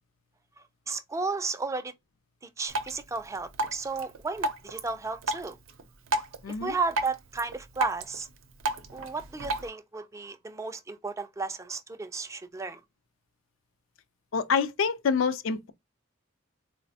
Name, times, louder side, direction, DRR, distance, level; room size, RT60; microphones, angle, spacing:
voice 1, 0.9-1.9 2.6-5.6 6.6-8.3 8.9-12.8, right 4 dB, 15° right, 0.3 m, -33 dB
Drip, 2.7-9.7, right 2 dB, 75° right, 0.5 m, -35 dB
voice 2, 6.4-6.7 14.3-15.7, left 5 dB, 75° left, 0.5 m, -27 dB
3.9 x 2.1 x 2.7 m
head